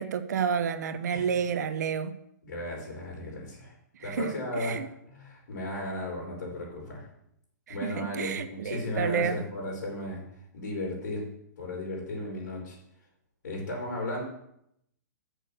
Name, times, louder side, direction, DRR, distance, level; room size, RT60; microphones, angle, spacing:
voice 1, 0.0-2.1 4.0-4.3 4.6-4.9 7.7-9.4, right 7 dB, 65° right, 10 dB, 1.0 m, -30 dB
voice 2, 2.4-3.7 4.0-7.1 7.7-10.2 10.5-11.3 11.6-12.8 13.4-14.2, left 1 dB, 75° left, -2 dB, 3.9 m, -35 dB
8.0 x 6.4 x 6.6 m, 0.76 s
hypercardioid pair, 165°, 10 cm